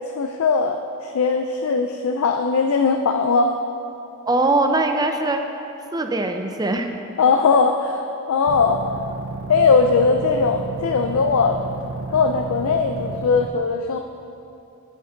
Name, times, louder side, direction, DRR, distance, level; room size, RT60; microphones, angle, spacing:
voice 1, 0.2-3.6 7.2-8.8 9.5-11.6 12.1-14.0, left 4 dB, 70° left, 5 dB, 0.4 m, -19 dB
voice 2, 4.3-5.4 5.9-6.9, right 2 dB, 15° right, 5 dB, 0.4 m, -21 dB
sound 1, 8.5-13.5, right 4 dB, 65° right, 0.6 m, -32 dB
8.9 x 7.9 x 3.8 m, 2.7 s
head